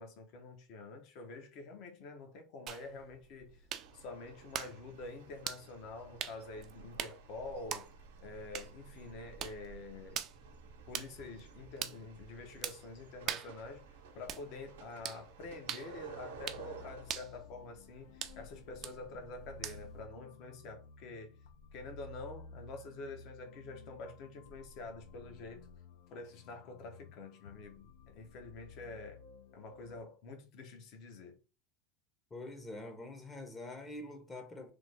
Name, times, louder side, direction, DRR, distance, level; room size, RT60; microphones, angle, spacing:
voice 1, 0.0-3.7 3.9-7.9 8.2-10.2 10.9-13.9 14.1-21.3 21.7-25.7 26.1-29.2 29.5-31.4, left 3 dB, 55° left, 0.8 m, -47 dB
sound 1, 2.7-20.1, right 9 dB, 45° right, 0.4 m, -45 dB
sound 2, 3.8-17.2, right 5 dB, 85° right, 0.8 m, -55 dB
sound 3, 16.3-30.0, left 4 dB, 80° left, 0.4 m, -55 dB
voice 2, 32.3-34.7, left 2 dB, 20° left, 0.7 m, -45 dB
3.4 x 2.0 x 3.3 m
hypercardioid pair, 105°, 0 cm